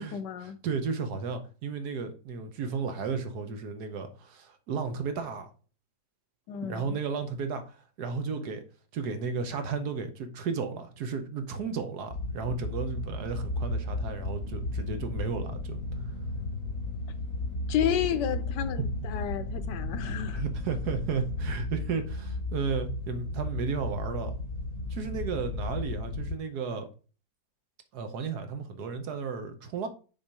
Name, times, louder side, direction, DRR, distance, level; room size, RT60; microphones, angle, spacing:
voice 1, 0.0-0.6 6.5-7.0 17.7-20.4, left 9 dB, 85° left, 1.4 m, -31 dB
voice 2, 0.6-5.5 6.6-8.6 8.9-15.8 20.3-24.4 24.9-26.9 27.9-29.9, right 5 dB, 70° right, 1.5 m, -34 dB
sound 1, 12.1-26.4, left 2 dB, 60° left, 1.1 m, -34 dB
Engine / Mechanisms, 12.7-21.6, left 1 dB, 40° right, 2.2 m, -54 dB
6.4 x 4.0 x 4.8 m
omnidirectional pair, 1.8 m